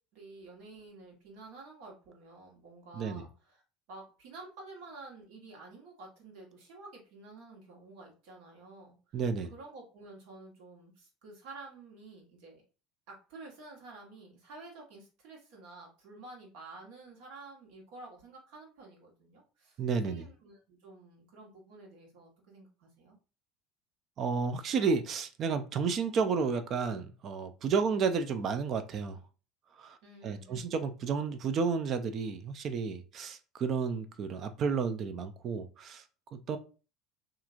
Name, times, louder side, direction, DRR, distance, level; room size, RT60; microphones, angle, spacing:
voice 1, 0.1-3.6 3.9-9.2 9.5-12.6 13.1-23.2 27.8-27.9 30.0-30.8, right 3 dB, 70° right, 1.3 m, -51 dB
voice 2, 9.1-9.5 19.8-20.3 24.2-29.2 29.8-30.0 30.2-36.0 36.3-36.6, right 5 dB, 45° right, 0.4 m, -31 dB
2.9 x 2.5 x 2.4 m
supercardioid pair, 90°, 0 cm